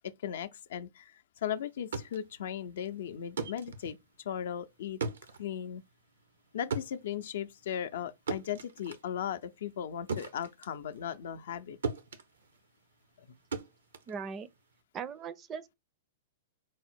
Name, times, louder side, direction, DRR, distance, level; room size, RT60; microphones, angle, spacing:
voice 1, 0.2-4.0 4.2-5.0 5.4-5.8 6.5-11.8, left 9 dB, 70° left, 0.4 m, -37 dB
sound 1, 1.7-11.6 11.8-14.8, right 4 dB, 90° right, 0.6 m, -40 dB
voice 2, 14.1-14.5 14.9-15.7, right 6 dB, 25° right, 0.4 m, -39 dB
4.7 x 2.0 x 4.3 m
hypercardioid pair, 130°, 0 cm